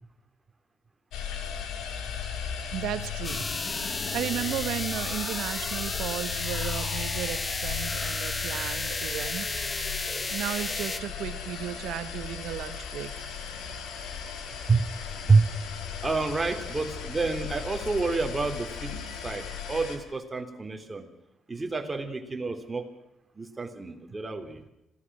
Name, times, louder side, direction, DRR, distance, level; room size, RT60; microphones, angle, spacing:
sound 1, 1.1-20.0, left 7 dB, 85° left, 3.4 m, -36 dB
voice 1, 2.7-3.5 4.1-9.5 10.3-13.3, right 11 dB, 85° right, 13 dB, 1.2 m, -34 dB
sound 2, 3.2-11.0, left 3 dB, 25° left, 1.3 m, -33 dB
voice 2, 16.0-18.9 19.2-21.1 21.5-22.9 23.3-24.6, right 4 dB, 20° right, 5 dB, 3.3 m, -28 dB
26.5 x 17.0 x 6.2 m, 0.87 s
cardioid pair, 95°, 0 cm